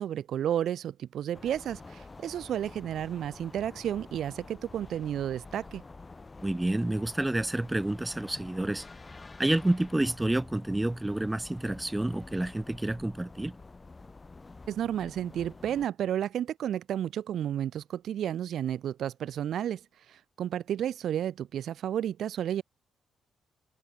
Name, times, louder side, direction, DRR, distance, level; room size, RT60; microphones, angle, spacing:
voice 1, 0.0-5.8 14.7-19.8 20.1-22.6, right 10 dB, 70° right, 0.5 m, -32 dB
sound 1, 1.3-15.9, left 3 dB, 25° left, 3.9 m, -48 dB
voice 2, 6.4-8.9 9.4-13.5, right 1 dB, 10° right, 1.3 m, -29 dB
open air
cardioid pair, 80°, 0 cm